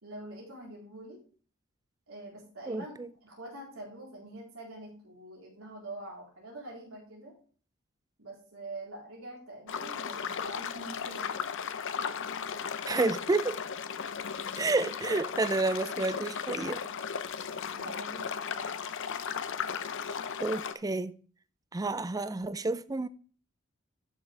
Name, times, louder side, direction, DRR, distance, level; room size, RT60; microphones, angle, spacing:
voice 1, 0.0-1.2 2.1-2.9 3.2-7.3 8.2-11.3 17.7-18.9, right 1 dB, 85° right, 3.8 m, -45 dB
voice 2, 2.7-3.1 12.9-13.6 14.6-16.8 20.4-21.2 21.7-23.1, right 3 dB, 15° right, 0.4 m, -30 dB
sound 1, 9.7-20.7, left 6 dB, 65° left, 0.6 m, -36 dB
11.5 x 6.5 x 3.4 m
head